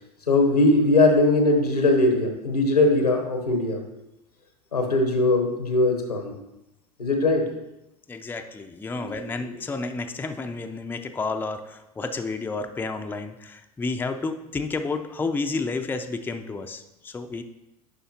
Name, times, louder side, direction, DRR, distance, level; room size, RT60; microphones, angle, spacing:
voice 1, 0.3-3.8 4.7-6.3 7.0-7.5 8.9-9.1, left 2 dB, 90° left, 4 dB, 1.1 m, -20 dB
voice 2, 8.1-17.4, left 3 dB, 10° left, 6 dB, 0.5 m, -31 dB
9.4 x 5.6 x 2.8 m, 0.91 s
figure-of-eight pair, 75°, 19 cm